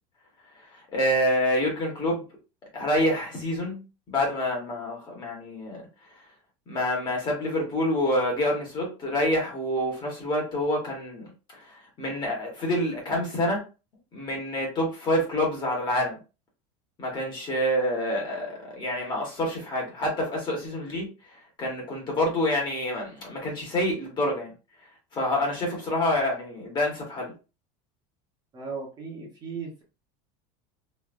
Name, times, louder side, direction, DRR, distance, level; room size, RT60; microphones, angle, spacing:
voice 1, 0.6-2.2 2.7-5.8 6.7-13.6 14.1-16.2 17.0-21.1 21.6-24.5 25.1-27.3, left 1 dB, 25° left, 1.3 m, -27 dB
voice 2, 28.5-29.8, right 5 dB, 25° right, 1.0 m, -36 dB
3.1 x 2.7 x 2.5 m
cardioid pair, 160°, 18 cm